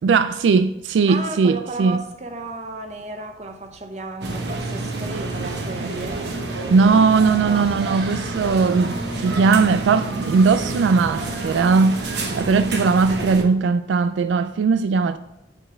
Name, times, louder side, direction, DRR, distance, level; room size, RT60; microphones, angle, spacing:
voice 1, 0.0-2.0 6.7-15.2, right 4 dB, 85° right, 0.3 m, -19 dB
voice 2, 1.1-6.3 7.4-7.7, right 2 dB, 40° right, 0.8 m, -33 dB
sound 1, 4.2-13.4, right 2 dB, 65° right, 1.0 m, -28 dB
9.0 x 4.0 x 5.1 m
head